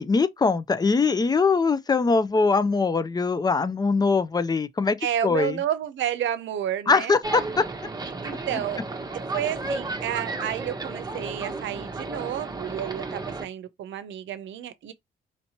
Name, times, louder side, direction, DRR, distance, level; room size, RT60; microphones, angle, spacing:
voice 1, 0.0-5.0 5.2-5.6 6.9-7.6, left 4 dB, 20° left, 0.5 m, -22 dB
voice 2, 5.0-7.2 8.2-8.8 9.1-14.9, right 10 dB, 75° right, 0.7 m, -30 dB
sound 1, 7.2-13.4, right 3 dB, 20° right, 0.8 m, -33 dB
4.4 x 2.8 x 2.9 m
cardioid pair, 90°, 20 cm